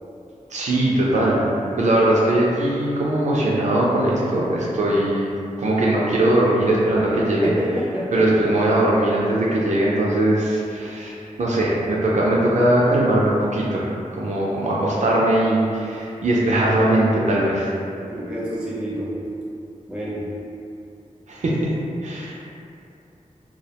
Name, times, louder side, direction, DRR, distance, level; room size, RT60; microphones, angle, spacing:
voice 1, 0.5-1.4 1.8-5.3 5.6-7.5 8.1-13.8 14.1-17.7 21.3-21.7 22.0-22.3, right 1 dB, 65° right, -5 dB, 0.4 m, -20 dB
voice 2, 7.4-8.3 18.1-19.1 19.9-20.3, equal, 5° right, -7 dB, 0.5 m, -28 dB
2.3 x 2.1 x 2.8 m, 2.6 s
wide cardioid pair, 95°, 14 cm